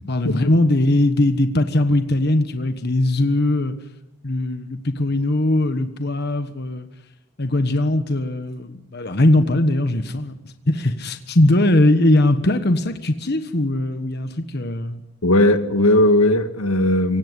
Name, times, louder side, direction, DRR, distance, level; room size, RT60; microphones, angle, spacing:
voice 1, 0.1-3.7 4.2-6.9 7.4-10.4 10.7-15.0, left 1 dB, 50° left, 1.3 m, -20 dB
voice 2, 15.2-17.2, left 1 dB, 85° left, 1.9 m, -17 dB
26.0 x 17.0 x 9.9 m
head